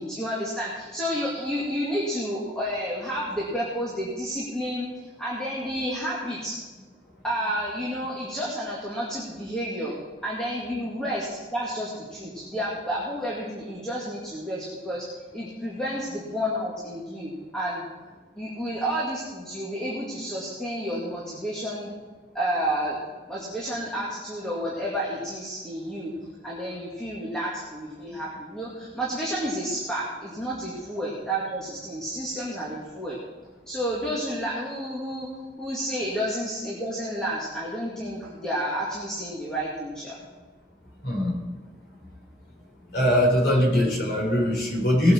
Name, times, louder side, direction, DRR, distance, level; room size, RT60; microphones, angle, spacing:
voice 1, 0.0-4.9 5.2-6.6 7.2-10.0 10.2-15.1 15.3-17.8 18.4-21.9 22.3-23.0 23.3-26.1 26.4-33.2 33.7-35.3 35.6-40.2, equal, 5° left, -6 dB, 2.1 m, -30 dB
voice 2, 41.0-41.3 42.9-45.1, equal, 65° left, -1 dB, 4.1 m, -21 dB
19.0 x 8.4 x 4.5 m, 1.3 s
head